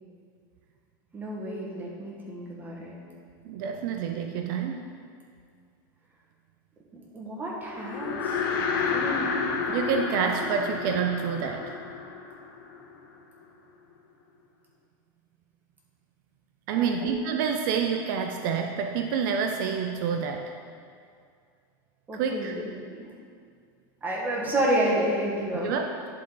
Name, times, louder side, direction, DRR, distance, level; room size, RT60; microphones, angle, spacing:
voice 1, 1.1-2.9 6.9-8.4 8.9-9.3 16.7-17.0 22.1-22.7 24.0-25.7, right 1 dB, 15° right, -4 dB, 1.3 m, -30 dB
voice 2, 3.4-4.8 9.7-11.8 16.7-20.5 22.1-22.6 25.6-25.9, right 6 dB, 65° right, 4 dB, 0.5 m, -28 dB
sound 1, 7.7-13.2, left 5 dB, 80° left, 0.8 m, -30 dB
11.0 x 3.8 x 3.9 m, 2.3 s
supercardioid pair, 150°, 12 cm